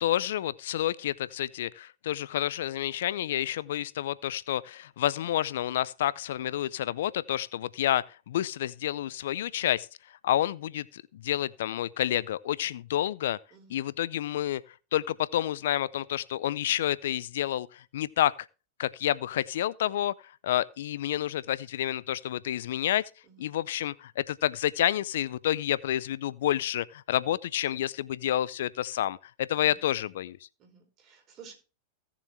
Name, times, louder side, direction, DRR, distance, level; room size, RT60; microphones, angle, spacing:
voice 1, 0.0-9.9 10.2-13.4 13.7-14.6 14.9-18.3 18.8-23.0 23.4-30.4, left 12 dB, 70° left, 0.5 m, -29 dB
voice 2, 13.5-14.0 23.2-23.4 29.5-29.8 30.6-31.6, right 6 dB, 40° right, 4.4 m, -53 dB
17.0 x 7.1 x 3.2 m
hypercardioid pair, 100°, 0 cm